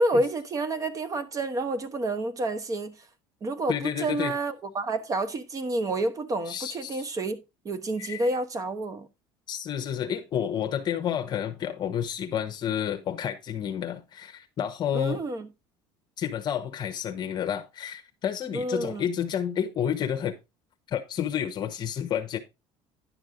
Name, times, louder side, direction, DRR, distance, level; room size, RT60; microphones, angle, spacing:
voice 1, 0.0-2.9 3.4-7.4 7.6-9.1 14.9-15.5 18.5-19.1, right 2 dB, 30° right, 1.2 m, -29 dB
voice 2, 3.7-4.3 6.5-7.0 8.0-8.2 9.5-15.2 16.2-20.4 20.9-22.4, left 9 dB, 45° left, 0.9 m, -30 dB
10.5 x 6.2 x 3.8 m
cardioid pair, 115°, 11 cm